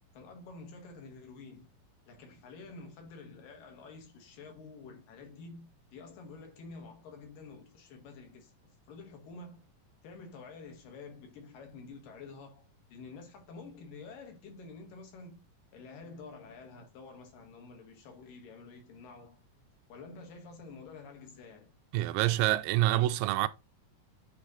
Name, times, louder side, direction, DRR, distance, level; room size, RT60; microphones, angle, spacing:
voice 1, 0.1-1.7 2.1-9.7 10.0-15.4 15.7-19.4 19.9-21.7, left 4 dB, 80° left, 3.4 m, -49 dB
voice 2, 21.9-23.5, right 15 dB, 85° right, 2.3 m, -26 dB
9.3 x 3.3 x 3.9 m
omnidirectional pair, 3.9 m